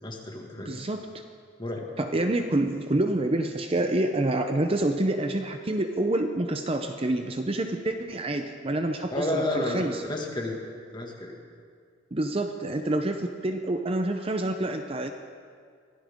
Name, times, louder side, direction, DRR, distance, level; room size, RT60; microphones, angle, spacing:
voice 1, 0.0-0.9 1.6-1.8 9.1-10.6 10.9-11.3, left 1 dB, 25° left, 0 dB, 1.9 m, -31 dB
voice 2, 0.6-1.1 2.0-10.0 12.1-15.1, right 1 dB, 30° right, 6 dB, 0.7 m, -27 dB
23.5 x 15.5 x 3.6 m, 2.1 s
head